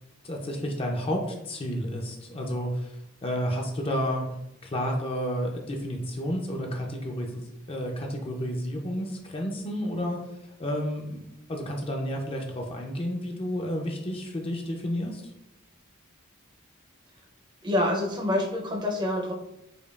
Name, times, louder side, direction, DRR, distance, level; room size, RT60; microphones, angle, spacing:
voice 1, 0.2-4.2 4.6-10.2 10.6-15.2, equal, 25° left, 1 dB, 0.5 m, -31 dB
voice 2, 17.6-19.3, left 1 dB, 20° right, 0 dB, 0.6 m, -26 dB
5.0 x 2.3 x 2.3 m, 0.85 s
head